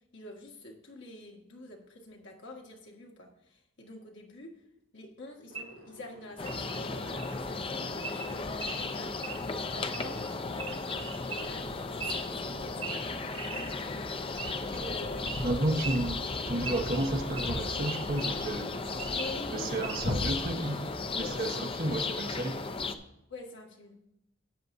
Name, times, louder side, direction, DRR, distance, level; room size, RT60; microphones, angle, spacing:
voice 1, 0.1-4.6 4.9-13.0 14.7-15.3 19.1-19.9 20.5-20.7 21.2-21.8 23.3-24.0, left 2 dB, 70° left, 0 dB, 1.9 m, -46 dB
Wild animals / Idling, 5.5-20.2, right 4 dB, 85° right, 1.5 m, -43 dB
sound 1, 6.4-23.0, left 3 dB, 30° left, 0.6 m, -35 dB
voice 2, 15.4-18.7 19.5-20.8 21.1-22.6, right 1 dB, 50° right, 2 dB, 1.1 m, -32 dB
Wind instrument woodwind instrument, 16.4-20.7, right 7 dB, 25° right, 1.5 m, -50 dB
13.0 x 8.9 x 2.7 m, 0.83 s
head